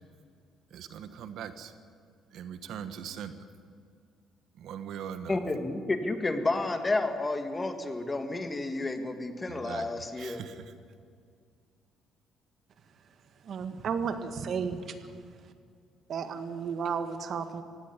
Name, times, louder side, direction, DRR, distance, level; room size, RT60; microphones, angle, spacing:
voice 1, 0.7-1.7 2.3-3.4 4.6-5.4 9.5-9.9 10.2-10.7, right 8 dB, 70° right, 11 dB, 1.2 m, -40 dB
voice 2, 5.3-10.4, left 2 dB, 20° left, 7 dB, 1.8 m, -31 dB
voice 3, 13.4-15.0 16.1-17.6, right 6 dB, 55° right, 9 dB, 1.6 m, -33 dB
17.0 x 16.0 x 9.8 m, 2.2 s
cardioid pair, 110°, 0 cm